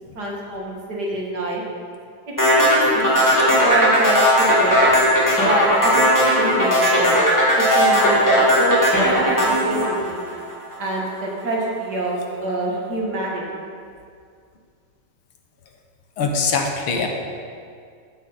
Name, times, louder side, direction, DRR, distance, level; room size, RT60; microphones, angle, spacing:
voice 1, 0.1-1.6 2.5-3.2 3.5-4.8 5.4-7.2 7.6-10.2 10.8-13.4, right 1 dB, 50° right, -3 dB, 2.3 m, -25 dB
sound 1, 2.4-10.7, equal, 10° left, 2.2 m, -17 dB
voice 2, 16.2-17.1, left 4 dB, 75° left, 3 dB, 1.9 m, -22 dB
13.5 x 8.5 x 4.2 m, 2.2 s
omnidirectional pair, 2.4 m